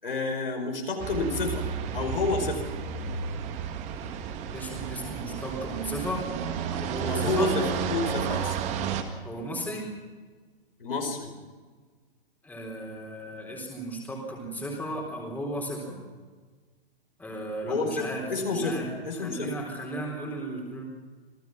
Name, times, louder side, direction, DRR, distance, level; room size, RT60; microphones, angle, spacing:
voice 1, 0.0-1.6 1.9-2.6 7.1-8.6 10.8-11.3 17.7-19.5, left 3 dB, 65° left, 2 dB, 5.1 m, -29 dB
sound 1, 1.0-9.0, right 7 dB, 25° right, 1.8 m, -32 dB
voice 2, 4.5-6.3 6.7-7.5 9.2-9.9 12.4-16.0 17.2-18.9 19.2-20.8, right 1 dB, 5° left, -1 dB, 3.9 m, -35 dB
27.5 x 18.5 x 6.0 m, 1.4 s
figure-of-eight pair, 120°, 29 cm